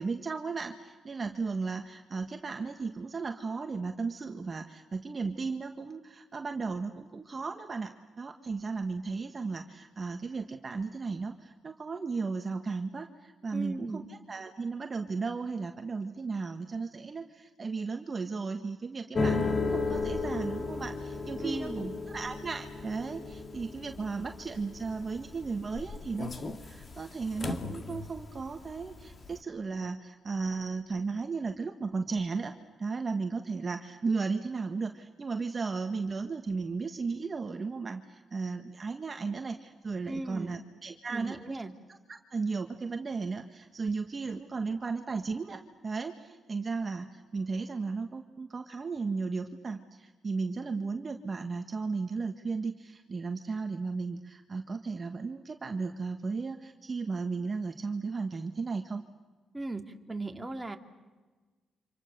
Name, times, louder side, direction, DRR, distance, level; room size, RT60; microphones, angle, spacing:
voice 1, 0.0-32.5 32.8-41.6 42.1-59.0, right 4 dB, 35° right, 5 dB, 1.6 m, -35 dB
voice 2, 13.5-14.1 21.4-21.9 40.1-40.6 41.1-41.7 59.5-59.8 60.1-60.8, right 2 dB, 15° right, 4 dB, 2.3 m, -37 dB
sound 1, 19.1-28.4 28.7-29.3, left 3 dB, 35° left, 2.2 m, -34 dB
29.5 x 26.5 x 6.8 m, 1.3 s
cardioid pair, 100°, 0 cm